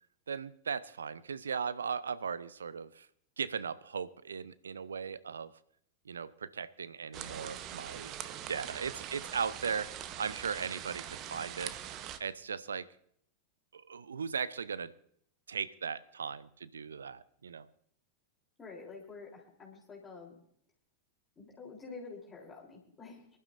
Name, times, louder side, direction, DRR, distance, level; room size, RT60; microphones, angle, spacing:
voice 1, 0.3-3.1 3.4-5.5 6.0-8.1 8.5-11.8 12.2-12.9 13.7-14.9 15.5-17.7, right 6 dB, 70° right, 18 dB, 0.5 m, -38 dB
sound 1, 7.1-12.2, right 10 dB, 35° right, 0.9 m, -43 dB
voice 2, 18.6-20.4 21.4-23.3, left 4 dB, 20° left, -2 dB, 3.5 m, -48 dB
25.0 x 12.0 x 2.6 m, 0.65 s
figure-of-eight pair, 90°, 0 cm